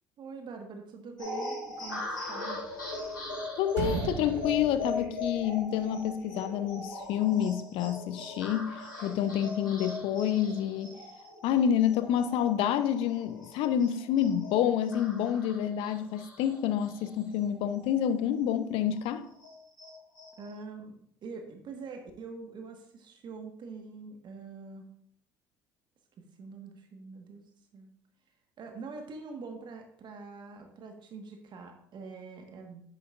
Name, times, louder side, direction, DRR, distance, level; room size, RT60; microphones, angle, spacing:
voice 1, 0.2-2.6 20.4-24.9 26.2-27.4 27.7-27.9 28.6-32.8, right 4 dB, 45° right, 1.5 m, -44 dB
sound 1, 1.2-18.1 18.4-18.5 18.9-20.5, left 2 dB, 85° left, 3.1 m, -40 dB
sound 2, 2.5-3.4 3.7-5.8, right 6 dB, 70° right, 0.9 m, -37 dB
voice 2, 3.6-11.0 11.4-19.3, left 9 dB, 60° left, 0.7 m, -28 dB
10.5 x 9.1 x 2.5 m
figure-of-eight pair, 60°, 11 cm